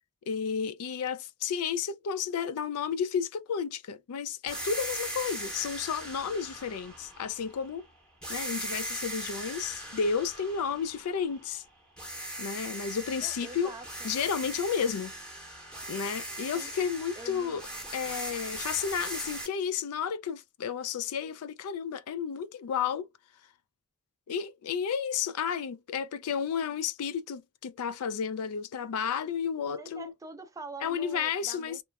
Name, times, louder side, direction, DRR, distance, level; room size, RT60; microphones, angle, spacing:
voice 1, 0.3-7.9 8.3-11.6 12.4-13.7 14.0-15.1 15.9-17.6 17.9-23.1 24.3-30.1 30.8-31.8, left 7 dB, 75° left, 0.4 m, -32 dB
sound 1, 4.5-7.8 8.2-11.6 12.0-19.5, right 1 dB, 5° left, 0.8 m, -39 dB
voice 2, 13.2-14.2 16.5-16.7 17.2-17.6 29.7-31.8, right 3 dB, 15° right, 0.3 m, -45 dB
2.9 x 2.3 x 2.2 m
head